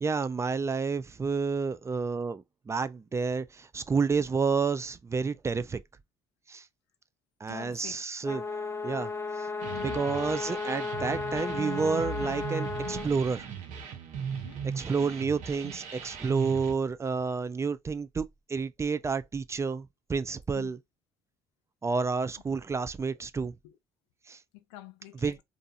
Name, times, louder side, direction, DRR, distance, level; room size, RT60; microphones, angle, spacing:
voice 1, 0.0-5.8 6.5-6.6 7.4-8.4 8.8-9.1 9.8-13.5 14.8-18.2 18.5-20.8 21.8-23.5 24.3-24.4 25.2-25.4, right 5 dB, 20° right, 0.3 m, -30 dB
voice 2, 7.5-8.0 9.7-10.1 14.3-14.6 20.5-20.7 23.6-23.8 24.5-25.4, left 15 dB, 90° left, 0.4 m, -46 dB
sound 1, 8.2-13.1, left 4 dB, 20° left, 0.6 m, -34 dB
sound 2, 9.6-16.7, right 6 dB, 70° right, 0.8 m, -38 dB
2.7 x 2.5 x 2.3 m
supercardioid pair, 70°, 13 cm